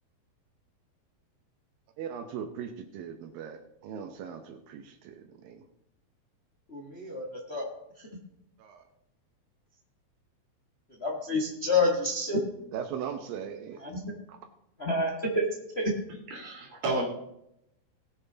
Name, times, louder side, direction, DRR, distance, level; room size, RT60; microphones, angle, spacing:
voice 1, 2.0-5.6 8.6-8.8 12.7-13.8 14.3-14.4, right 8 dB, 80° right, 5 dB, 2.6 m, -39 dB
voice 2, 6.7-7.7 11.0-12.4 13.8-14.0 14.8-15.4 15.7-15.9, left 2 dB, 60° left, 0 dB, 0.6 m, -28 dB
voice 3, 16.3-17.0, right 2 dB, 55° right, -1 dB, 4.0 m, -31 dB
19.5 x 6.9 x 3.9 m, 0.81 s
omnidirectional pair, 4.2 m